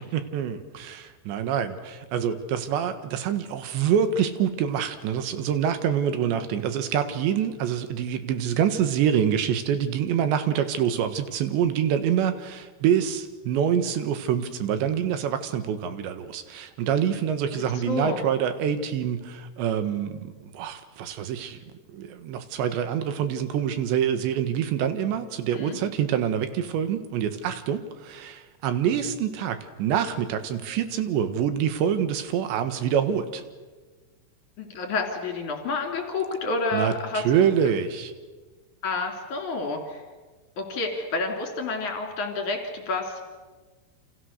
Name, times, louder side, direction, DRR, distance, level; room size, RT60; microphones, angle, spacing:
voice 1, 0.1-21.6 21.9-33.4 36.7-38.1, right 8 dB, 70° right, 9 dB, 3.6 m, -26 dB
voice 2, 17.5-18.2 25.5-25.8 34.6-37.5 38.8-40.0 40.6-43.2, left 3 dB, 45° left, 2 dB, 3.9 m, -29 dB
29.0 x 27.5 x 6.6 m, 1.3 s
omnidirectional pair, 5.5 m